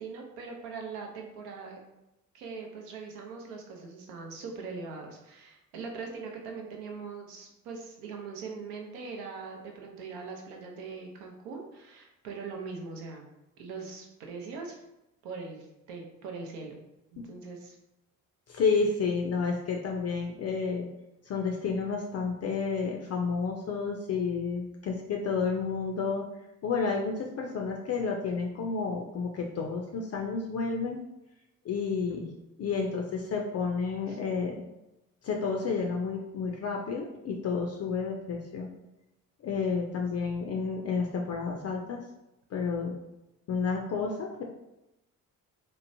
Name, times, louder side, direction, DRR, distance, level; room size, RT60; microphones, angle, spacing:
voice 1, 0.0-1.8 2.3-13.3 13.6-14.8 15.2-16.8 17.1-17.8 32.1-32.3 34.1-34.2, right 4 dB, 70° right, 1 dB, 0.7 m, -41 dB
voice 2, 18.5-20.9 21.3-26.3 26.6-31.0 31.6-32.3 32.6-34.6 35.2-38.7 39.4-42.0 42.5-43.0 43.5-44.4, left 5 dB, 40° left, 1 dB, 0.4 m, -30 dB
2.9 x 2.0 x 2.6 m, 0.91 s
hypercardioid pair, 45°, 42 cm